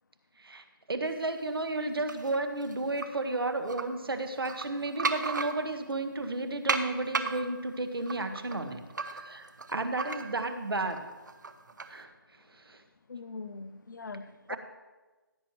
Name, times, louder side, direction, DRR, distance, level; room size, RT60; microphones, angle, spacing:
voice 1, 0.4-8.8 9.1-11.0 11.9-12.1 12.6-12.8 14.5-14.6, right 2 dB, 90° right, 7 dB, 1.5 m, -33 dB
sound 1, 2.1-3.1 3.6-3.8 4.3-5.9 6.7-10.6 10.9-12.0, right 4 dB, 55° right, 1.0 m, -35 dB
voice 2, 13.1-14.6, left 4 dB, 55° left, 12 dB, 0.8 m, -42 dB
16.0 x 9.1 x 3.1 m, 1.2 s
hypercardioid pair, 175°, 12 cm